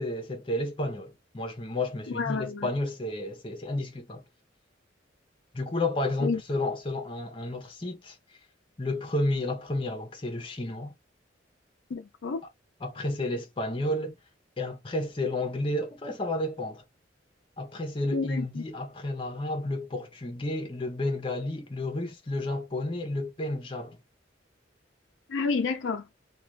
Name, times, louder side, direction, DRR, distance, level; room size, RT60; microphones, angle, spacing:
voice 1, 0.0-4.2 5.5-8.2 8.8-10.9 12.8-14.2 14.6-16.8 17.6-24.0, left 1 dB, 30° left, 0.7 m, -31 dB
voice 2, 2.1-2.7 6.2-6.4 11.9-12.4 18.1-18.6 25.3-26.0, left 4 dB, 75° left, 0.4 m, -30 dB
2.5 x 2.3 x 3.1 m
head